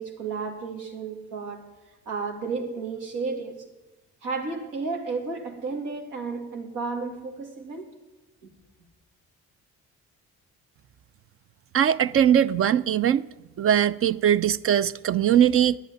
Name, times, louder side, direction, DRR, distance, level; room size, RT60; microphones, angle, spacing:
voice 1, 0.0-1.7 2.1-3.7 4.2-7.9 8.4-8.5, right 4 dB, 90° right, 2.3 m, -32 dB
voice 2, 11.7-13.2 13.6-15.8, right 9 dB, 50° right, 0.4 m, -20 dB
10.0 x 8.3 x 9.4 m
cardioid pair, 90°, 30 cm